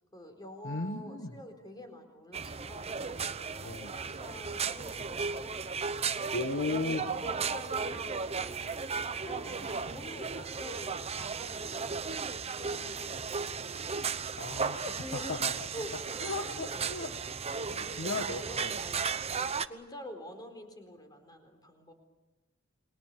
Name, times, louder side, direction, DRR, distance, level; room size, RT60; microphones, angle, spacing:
voice 1, 0.1-5.6 6.7-8.6 9.2-13.5 14.9-15.4 15.7-16.2 16.5-16.9 17.6-19.1 19.6-21.9, equal, 20° left, 6 dB, 4.2 m, -47 dB
voice 2, 0.6-1.3 3.6-3.9 6.3-7.0 14.4-15.0 15.3-15.5 16.2-17.1 17.6-18.8, left 3 dB, 60° left, 5 dB, 1.7 m, -35 dB
sound 1, 2.3-19.7, right 5 dB, 30° right, 0.8 m, -35 dB
29.0 x 23.0 x 6.9 m, 1.1 s
head